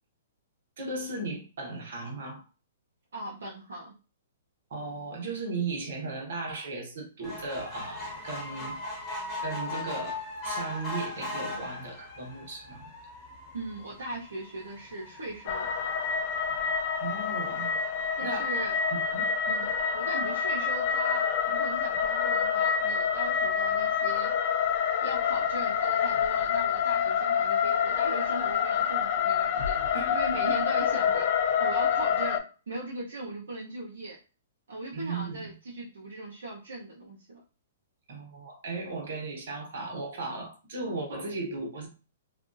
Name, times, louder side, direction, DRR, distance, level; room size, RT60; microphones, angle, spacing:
voice 1, 0.8-2.4 4.7-8.8 9.4-12.8 17.0-17.7 18.2-18.5 18.9-19.3 29.9-30.2 34.9-35.5 38.1-41.9, right 3 dB, 65° right, 1.1 m, -36 dB
voice 2, 3.1-3.9 13.5-15.7 18.2-18.8 19.5-24.3 25.0-31.3 31.6-34.2 34.7-37.4, right 1 dB, 80° right, 0.8 m, -39 dB
sound 1, 7.2-19.8 20.4-20.5 20.8-20.9 21.1-21.2, left 2 dB, 20° left, 1.2 m, -40 dB
sound 2, 15.5-32.4, left 7 dB, 50° left, 0.4 m, -27 dB
2.6 x 2.3 x 2.6 m
hypercardioid pair, 135°, 0 cm